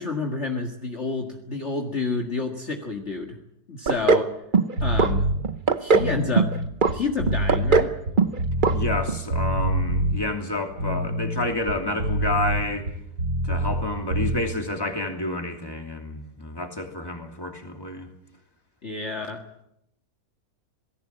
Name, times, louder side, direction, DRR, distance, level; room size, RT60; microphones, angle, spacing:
voice 1, 0.0-3.4 3.7-4.3 4.8-5.3 5.8-6.5 6.9-7.9 18.8-19.4, left 4 dB, 40° left, 2 dB, 2.1 m, -29 dB
sound 1, 3.9-4.3 4.5-5.1 5.4-6.1 6.4-6.9 7.3-8.4 8.6-8.7 9.1-9.2, right 5 dB, 35° right, 0.9 m, -19 dB
sound 2, 4.8-5.4 5.9-9.0 9.3-10.2 10.7-13.8 14.1-14.4, right 1 dB, 60° right, 6.7 m, -26 dB
voice 2, 8.7-12.9 13.4-18.1, left 2 dB, 15° left, 3 dB, 2.9 m, -29 dB
26.5 x 18.5 x 7.6 m, 0.81 s
omnidirectional pair, 1.9 m